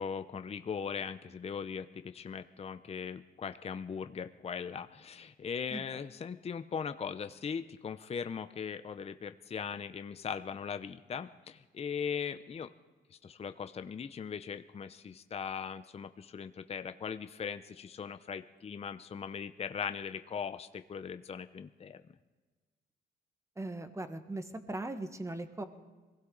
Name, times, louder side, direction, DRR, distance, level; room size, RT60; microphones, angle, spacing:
voice 1, 0.0-12.7 13.1-22.0, left 6 dB, 30° left, 9 dB, 0.6 m, -39 dB
voice 2, 23.6-25.6, right 2 dB, 15° right, 8 dB, 1.4 m, -39 dB
22.5 x 16.0 x 3.9 m, 1.3 s
cardioid pair, 90°, 20 cm